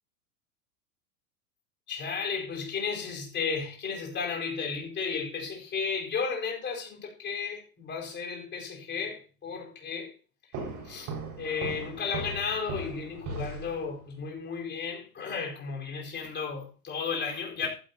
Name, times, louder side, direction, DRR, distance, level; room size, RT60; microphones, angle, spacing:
voice 1, 1.9-10.1 10.8-17.7, left 5 dB, 25° left, 4.9 m, -34 dB
sound 1, 10.5-14.2, right 3 dB, 45° right, 6.0 m, -38 dB
15.0 x 12.0 x 3.0 m
hypercardioid pair, 115°, 44 cm